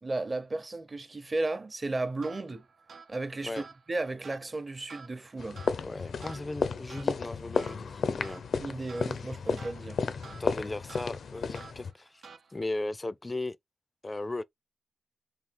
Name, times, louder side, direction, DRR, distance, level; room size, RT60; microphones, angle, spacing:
voice 1, 0.0-2.6 3.1-3.6 3.9-5.6 8.6-10.0, right 2 dB, 35° right, 0.9 m, -34 dB
sound 1, 2.2-12.8, right 5 dB, 85° right, 0.9 m, -52 dB
sound 2, 5.4-11.9, left 5 dB, 80° left, 0.5 m, -33 dB
voice 2, 5.8-8.4 10.2-13.6 14.0-14.4, left 2 dB, 25° left, 0.4 m, -37 dB
4.6 x 2.4 x 3.6 m
wide cardioid pair, 90°, 0 cm